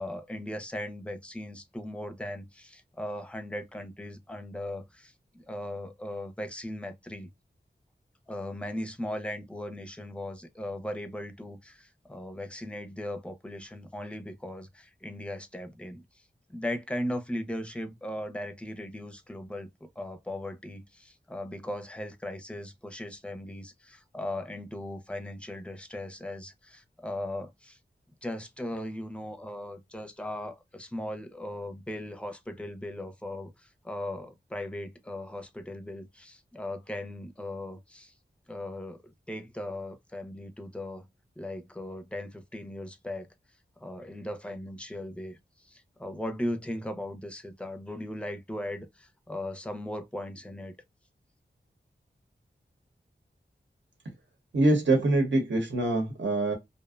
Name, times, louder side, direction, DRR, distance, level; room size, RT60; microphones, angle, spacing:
voice 1, 0.0-7.3 8.3-16.0 16.5-27.8 28.2-38.1 38.5-39.0 39.3-41.1 41.4-43.3 43.8-45.4 45.6-50.7, left 1 dB, 5° left, 0.5 m, -38 dB
voice 2, 54.5-56.5, right 2 dB, 75° right, 0.9 m, -24 dB
2.5 x 2.1 x 2.3 m
wide cardioid pair, 50°, 19 cm